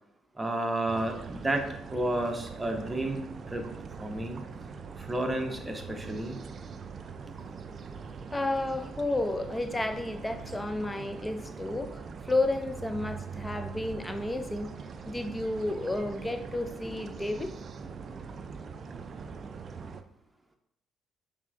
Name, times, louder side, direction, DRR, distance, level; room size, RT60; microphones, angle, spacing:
voice 1, 0.4-1.6 1.9-3.2 3.5-3.6 4.0-4.4 5.0-6.4, right 1 dB, 15° right, 3 dB, 0.9 m, -31 dB
sound 1, 0.9-20.0, right 5 dB, 50° right, 0.4 m, -42 dB
voice 2, 8.3-14.7 15.0-17.5, left 2 dB, 15° left, 8 dB, 0.5 m, -31 dB
5.6 x 3.3 x 2.5 m, 0.76 s
hypercardioid pair, 55°, 0 cm